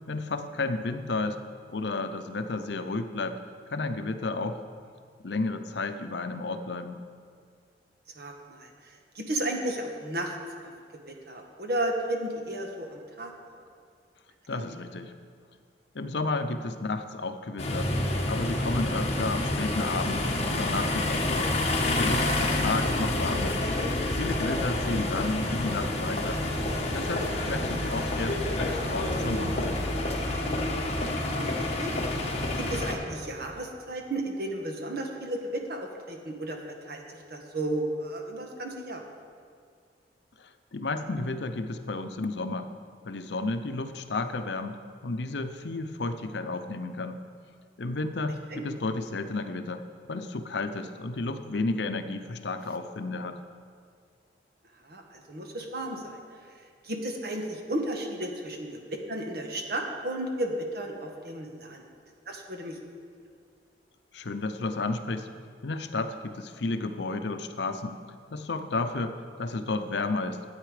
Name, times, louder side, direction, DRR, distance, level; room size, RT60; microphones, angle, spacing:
voice 1, 0.1-1.4 1.7-3.4 3.7-4.6 5.2-7.0 14.5-15.1 15.9-17.9 18.3-21.5 21.8-23.6 24.2-26.4 26.9-29.8 40.4-42.7 43.0-47.2 47.8-49.8 50.1-53.4 64.1-65.3 65.6-68.0 68.3-70.4, left 3 dB, 70° left, 9 dB, 0.7 m, -32 dB
voice 2, 8.1-10.4 11.1-13.6 14.5-14.7 24.9-25.0 31.1-31.9 32.5-39.0 48.5-48.6 54.8-56.2 56.8-61.9 62.3-62.8, right 1 dB, 60° right, 2 dB, 1.4 m, -34 dB
sound 1, 17.6-32.9, left 1 dB, 40° left, 1.5 m, -28 dB
12.5 x 8.9 x 5.0 m, 2.1 s
head